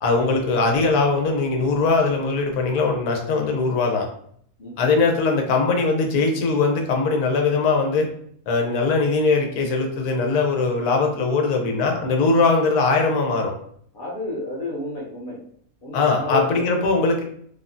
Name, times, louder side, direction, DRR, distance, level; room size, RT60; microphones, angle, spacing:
voice 1, 0.0-4.1 4.8-8.1 8.5-13.5 15.9-17.2, left 3 dB, 90° left, 2 dB, 1.1 m, -20 dB
voice 2, 4.6-5.0 13.9-15.4 15.8-16.7, left 2 dB, 45° left, -4 dB, 0.7 m, -31 dB
3.4 x 2.1 x 2.5 m, 0.66 s
omnidirectional pair, 1.5 m